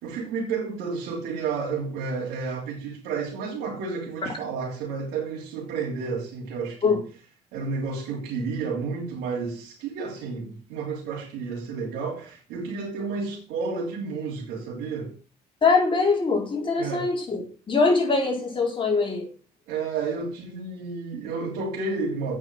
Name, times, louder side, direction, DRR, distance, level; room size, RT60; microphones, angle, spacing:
voice 1, 0.0-7.0 7.5-15.1 16.8-17.1 19.7-22.4, right 4 dB, 90° right, 3.3 m, -31 dB
voice 2, 15.6-17.4 17.7-19.3, left 4 dB, 30° left, 4.2 m, -22 dB
8.8 x 6.2 x 7.7 m
cardioid pair, 110°, 17 cm